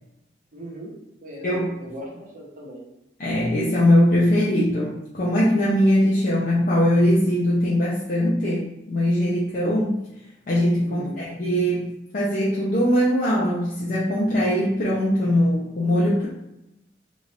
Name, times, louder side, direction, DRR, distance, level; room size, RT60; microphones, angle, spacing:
voice 1, 0.5-0.9 1.2-1.4 1.8-2.8 10.8-11.2, equal, 50° right, -3 dB, 1.0 m, -38 dB
voice 2, 1.4-1.8 3.2-10.0 10.5-16.3, equal, 50° left, -7 dB, 0.6 m, -21 dB
3.2 x 2.4 x 3.1 m, 0.89 s
head